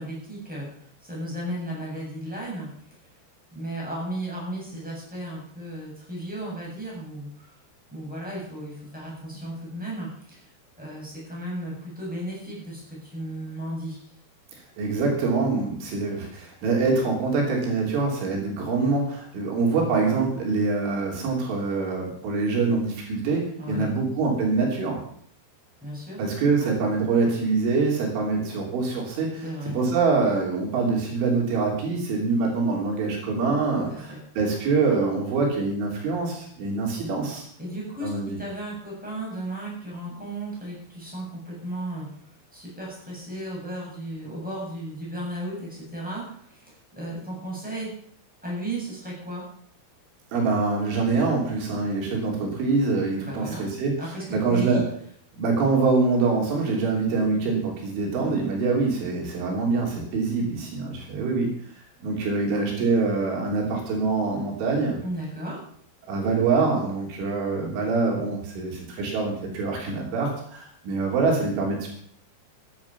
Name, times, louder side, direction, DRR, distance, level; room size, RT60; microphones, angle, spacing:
voice 1, 0.0-2.7 3.5-7.5 7.9-10.5 10.8-14.0 23.6-23.9 25.8-26.2 26.6-26.7 29.4-29.7 33.9-34.2 37.6-38.1 38.4-42.1 42.5-47.9 48.4-49.4 53.2-53.6 54.0-54.8 65.0-65.6, right 1 dB, ahead, -4 dB, 7.4 m, -35 dB
voice 2, 14.8-25.0 26.2-29.4 29.7-37.5 38.0-38.4 50.3-53.9 54.3-54.8 55.4-61.5 62.0-65.0 66.1-71.9, right 4 dB, 75° right, -1 dB, 5.7 m, -25 dB
14.5 x 11.0 x 5.9 m, 0.62 s
omnidirectional pair, 5.6 m